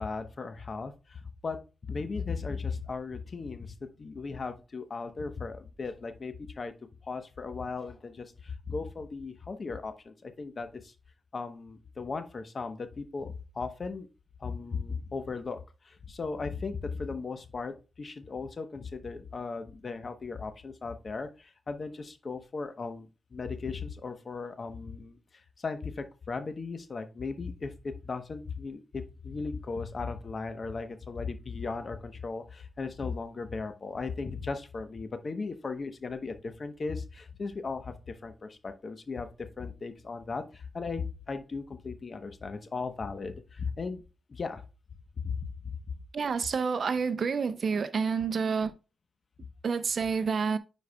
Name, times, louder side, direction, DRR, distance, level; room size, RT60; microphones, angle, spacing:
voice 1, 0.0-6.7 7.0-10.9 11.3-14.1 14.4-44.0 44.3-44.6 45.2-46.0, left 4 dB, 55° left, 1.0 m, -37 dB
voice 2, 46.1-48.7 49.6-50.6, right 5 dB, 65° right, 0.5 m, -28 dB
9.7 x 4.6 x 2.3 m
cardioid pair, 55°, 0 cm